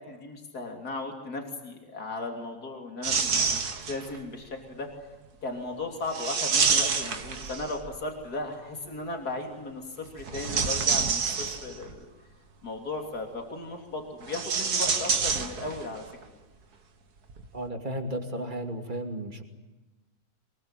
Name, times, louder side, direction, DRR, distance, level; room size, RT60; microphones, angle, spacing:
voice 1, 0.0-3.6 3.9-4.9 5.4-12.1 12.6-16.0, left 2 dB, 80° left, 3 dB, 3.7 m, -36 dB
sound 1, 3.0-4.2 6.1-8.0 10.2-11.9 14.2-16.2 17.3-17.5, right 5 dB, 85° right, 2.2 m, -27 dB
voice 2, 17.5-19.4, right 1 dB, 30° right, 5 dB, 2.9 m, -34 dB
24.0 x 22.5 x 9.0 m, 1.2 s
omnidirectional pair, 1.6 m